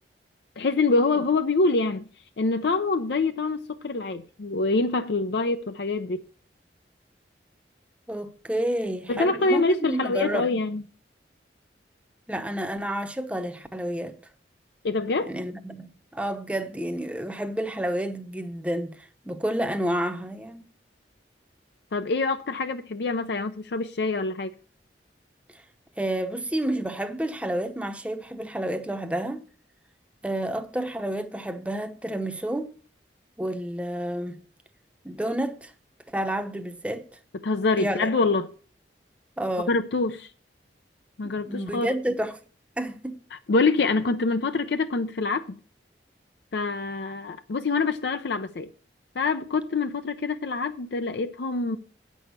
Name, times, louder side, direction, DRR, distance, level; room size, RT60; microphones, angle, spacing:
voice 1, 0.6-2.1 2.4-6.2 9.1-10.8 14.8-15.3 21.9-24.5 37.4-38.5 39.7-40.3 41.2-41.9 43.3-45.4 46.5-48.7 49.2-51.8, left 3 dB, 70° left, 0.5 m, -25 dB
voice 2, 8.1-10.5 12.3-14.2 15.2-15.9 16.1-20.6 26.0-29.5 30.2-32.8 33.4-34.4 35.0-35.7 36.1-37.1 37.8-38.1 39.4-39.7 41.2-42.3 42.8-43.2, right 1 dB, 5° right, 0.7 m, -30 dB
8.5 x 6.2 x 6.8 m
head